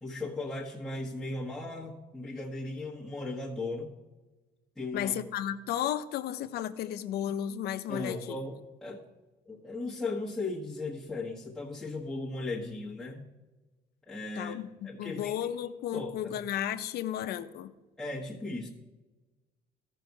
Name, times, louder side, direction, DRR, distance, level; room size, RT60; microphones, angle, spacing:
voice 1, 0.0-3.9 4.8-5.1 7.9-9.0 9.5-13.2 14.1-14.6 14.8-15.4 15.9-16.4 18.0-18.7, left 2 dB, ahead, -6 dB, 1.2 m, -37 dB
voice 2, 4.9-8.2 14.4-17.7, left 10 dB, 70° left, 11 dB, 0.6 m, -33 dB
13.5 x 5.4 x 4.6 m, 1.2 s
cardioid pair, 110°, 17 cm